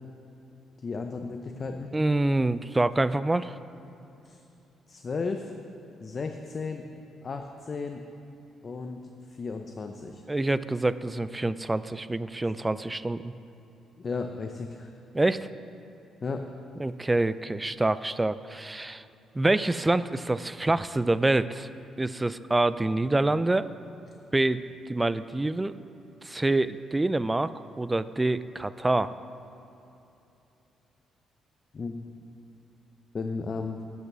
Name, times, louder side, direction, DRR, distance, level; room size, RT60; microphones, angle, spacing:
voice 1, 0.8-1.9 4.2-4.4 4.9-5.5 6.0-6.9 7.2-8.0 8.6-10.2 14.0-14.9 16.2-16.4 31.7-31.9 33.1-33.8, left 4 dB, 40° left, 5 dB, 0.6 m, -34 dB
voice 2, 1.9-3.6 10.3-13.3 15.1-15.5 16.8-19.0 19.3-21.7 22.0-23.7 24.3-25.8 26.2-27.5 27.8-29.1, right 2 dB, 15° right, 15 dB, 0.3 m, -26 dB
12.5 x 5.5 x 6.1 m, 2.9 s
cardioid pair, 90°, 0 cm